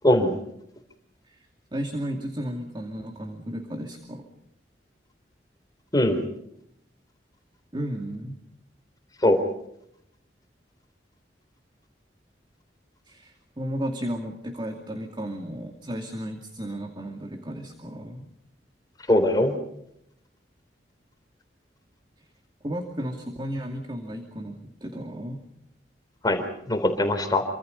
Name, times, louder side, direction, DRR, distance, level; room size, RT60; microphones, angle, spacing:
voice 1, 1.3-4.3 7.7-8.4 13.1-18.3 22.6-25.4, equal, 25° right, 4 dB, 2.5 m, -34 dB
voice 2, 19.1-19.5 26.2-27.4, left 1 dB, 20° left, 6 dB, 3.5 m, -21 dB
28.0 x 25.5 x 5.5 m, 0.76 s
head